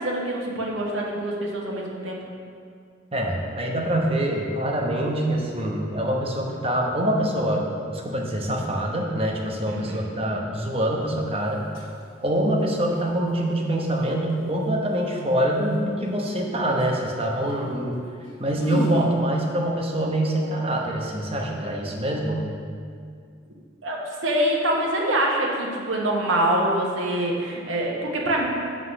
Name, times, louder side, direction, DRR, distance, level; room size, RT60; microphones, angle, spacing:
voice 1, 0.0-2.2 9.7-10.1 23.8-28.4, right 1 dB, 75° right, -2 dB, 1.3 m, -25 dB
voice 2, 3.1-11.7 12.2-18.0 18.4-22.4, right 1 dB, 30° right, -1 dB, 0.9 m, -25 dB
sound 1, 10.7-10.9 11.5-12.0 12.4-13.0 16.3-16.4 16.7-17.0 17.3-17.5 18.0-18.1 18.2-19.1, left 2 dB, 75° left, 1.1 m, -31 dB
7.9 x 3.9 x 6.4 m, 2.3 s
head